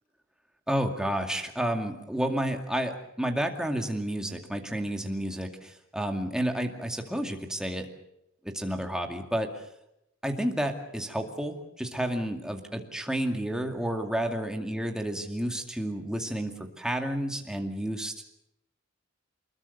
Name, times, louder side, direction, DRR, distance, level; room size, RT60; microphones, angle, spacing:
voice 1, 0.7-7.9 8.4-9.5 10.2-18.1, right 1 dB, 5° right, 3 dB, 2.2 m, -31 dB
24.5 x 21.0 x 6.7 m, 0.81 s
head